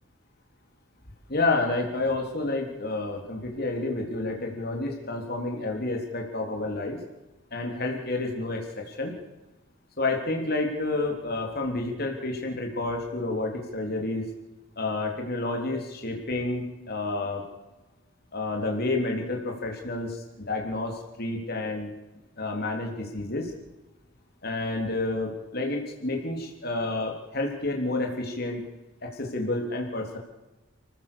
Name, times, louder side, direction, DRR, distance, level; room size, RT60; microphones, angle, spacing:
voice 1, 1.3-7.0 7.5-9.1 10.0-14.3 14.8-17.4 18.3-21.9 22.4-23.5 24.4-28.6 29.0-30.2, left 2 dB, 50° left, 1 dB, 3.4 m, -29 dB
29.5 x 15.5 x 6.9 m, 1.1 s
head